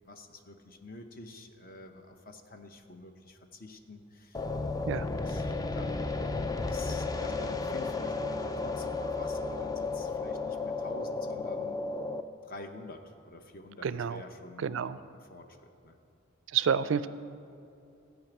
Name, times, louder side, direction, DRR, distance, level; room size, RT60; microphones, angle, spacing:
voice 1, 0.0-4.5 4.9-6.1 6.7-11.8 12.4-14.7 15.1-16.0, left 2 dB, 45° left, 6 dB, 0.8 m, -47 dB
sound 1, 4.3-12.2, left 3 dB, 20° left, 0.4 m, -33 dB
voice 2, 13.8-14.2 14.6-15.0 16.5-17.1, right 7 dB, 65° right, 15 dB, 0.4 m, -29 dB
14.0 x 5.0 x 8.9 m, 2.6 s
head